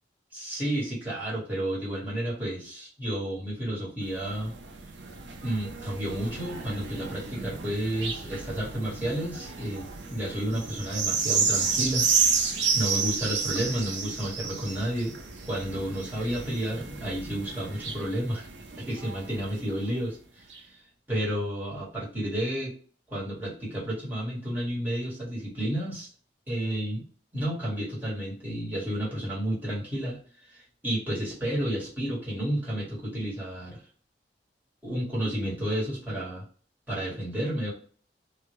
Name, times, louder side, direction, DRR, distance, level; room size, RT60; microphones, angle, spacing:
voice 1, 0.3-4.5 5.4-12.1 12.4-15.2 15.5-18.5 18.8-20.8 21.1-22.7 23.1-26.1 26.5-27.0 27.3-33.8 34.8-36.4 36.9-37.7, right 1 dB, 10° right, -7 dB, 1.1 m, -31 dB
sound 1, 4.1-19.9 20.5-20.6, right 5 dB, 75° right, 0.5 m, -31 dB
2.1 x 2.1 x 2.9 m, 0.43 s
head